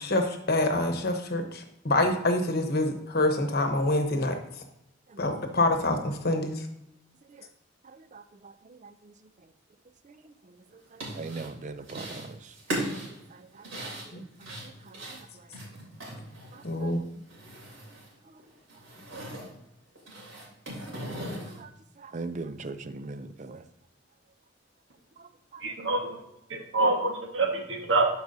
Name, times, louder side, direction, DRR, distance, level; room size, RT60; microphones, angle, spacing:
voice 1, 0.0-4.4 5.2-6.7 14.1-14.2 16.6-17.0, left 2 dB, 50° left, 5 dB, 1.0 m, -26 dB
sound 1, 10.7-11.5 11.8-12.3 12.5-16.8 17.1-18.1 18.4-19.5 19.9-21.6, right 1 dB, 90° right, 2.9 m, -38 dB
voice 2, 11.2-12.3 16.8-16.9 21.6-21.7 22.0-23.6, right 3 dB, 40° right, 10 dB, 0.4 m, -38 dB
voice 3, 25.6-26.2 26.5-28.1, right 3 dB, 70° right, 2 dB, 1.4 m, -26 dB
11.5 x 4.7 x 2.7 m, 0.81 s
head